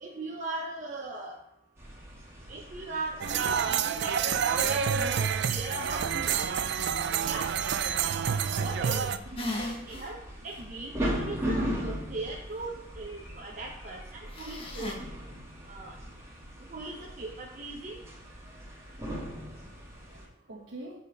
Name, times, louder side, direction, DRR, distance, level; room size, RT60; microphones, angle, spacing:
voice 1, 0.0-1.3 2.5-6.4 7.2-7.5 8.6-15.0 15.7-15.9 16.7-18.0, right 2 dB, 40° right, -2 dB, 0.8 m, -39 dB
sound 1, 1.8-20.3, equal, 15° right, 1.8 m, -39 dB
sound 2, 3.2-9.2, right 7 dB, 60° right, 0.4 m, -28 dB
voice 2, 7.9-9.3 18.5-18.6 19.1-21.0, right 1 dB, 80° right, -4 dB, 1.2 m, -48 dB
sound 3, 9.4-10.1 10.5-10.6 14.3-14.9, left 1 dB, 30° left, 1.2 m, -35 dB
6.8 x 5.0 x 5.2 m, 0.83 s
head